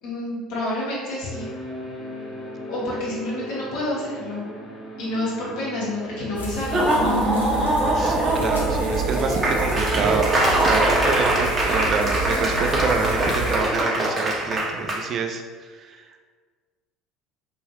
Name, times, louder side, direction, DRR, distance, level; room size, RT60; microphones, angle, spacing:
voice 1, 0.0-1.5 2.7-4.4 5.0-6.8, left 1 dB, 60° left, -7 dB, 1.3 m, -28 dB
sound 1, 1.3-13.1, right 2 dB, 10° left, 0.8 m, -36 dB
sound 2, 6.3-13.6, right 3 dB, 80° left, 0.6 m, -30 dB
Laughter / Applause, 6.6-15.0, right 1 dB, 25° right, 0.7 m, -22 dB
voice 2, 7.9-10.4 10.6-16.0, right 5 dB, 40° right, 4 dB, 0.4 m, -27 dB
3.6 x 2.9 x 2.8 m, 1.5 s
figure-of-eight pair, 65°, 0 cm